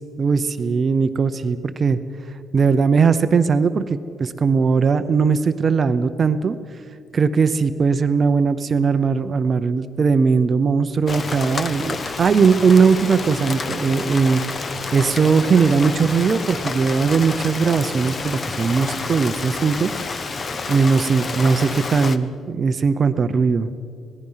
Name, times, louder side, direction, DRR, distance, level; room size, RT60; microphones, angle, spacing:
voice 1, 0.2-2.0 2.5-6.6 7.1-19.9 20.7-23.7, right 5 dB, 35° right, 11 dB, 0.7 m, -19 dB
Rain, 11.1-22.2, left 4 dB, 30° left, 0.9 m, -29 dB
26.0 x 19.0 x 5.7 m, 2.5 s
cardioid pair, 155°, 0 cm